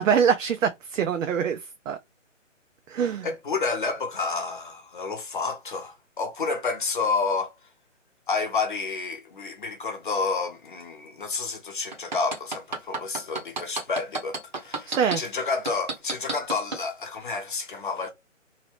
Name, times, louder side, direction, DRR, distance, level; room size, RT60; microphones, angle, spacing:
voice 1, 0.0-1.6 1.9-2.0 2.9-3.3 14.9-15.2, right 7 dB, 80° right, 0.5 m, -24 dB
voice 2, 3.2-7.5 8.3-18.1, left 4 dB, 40° left, 0.7 m, -30 dB
sound 1, 11.9-15.2 15.7-16.8 17.3-17.4, right 3 dB, 35° right, 0.6 m, -30 dB
2.7 x 2.0 x 3.1 m
hypercardioid pair, 170°, 38 cm